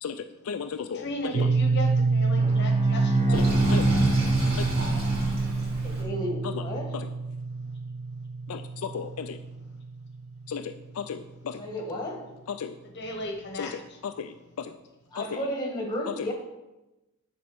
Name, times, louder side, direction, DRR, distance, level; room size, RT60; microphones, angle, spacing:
voice 1, 0.0-1.5 3.3-3.4 3.7-3.9 4.5-4.7 6.4-6.6 6.9-7.1 8.5-9.4 10.5-11.6 12.5-12.8 13.5-14.8 15.1-15.4 16.2-16.3, left 6 dB, 75° left, 8 dB, 0.4 m, -35 dB
voice 2, 0.9-3.5 12.8-13.8, left 1 dB, 50° left, 4 dB, 1.1 m, -36 dB
sound 1, 1.3-11.3, right 3 dB, 70° right, 0.4 m, -27 dB
Bowed string instrument, 2.4-5.9, right 2 dB, 25° right, 1.1 m, -27 dB
Sink (filling or washing), 3.3-6.0, right 1 dB, 45° right, 2.6 m, -31 dB
voice 3, 5.8-6.9 11.5-12.2 15.1-16.3, equal, 20° left, 0 dB, 1.9 m, -33 dB
10.5 x 4.3 x 6.1 m, 1.0 s
head